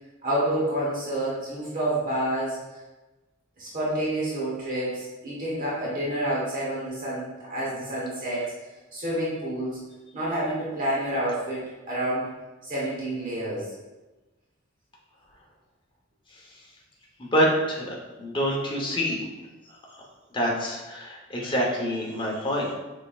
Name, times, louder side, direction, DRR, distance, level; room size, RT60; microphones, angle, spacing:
voice 1, 0.2-2.6 3.6-8.5 8.9-9.8 10.1-12.3 12.6-13.7, right 1 dB, 40° right, -7 dB, 1.2 m, -28 dB
voice 2, 17.2-17.9 18.2-19.2 20.3-22.7, equal, 25° left, -2 dB, 0.9 m, -26 dB
6.2 x 3.5 x 2.4 m, 1.1 s
head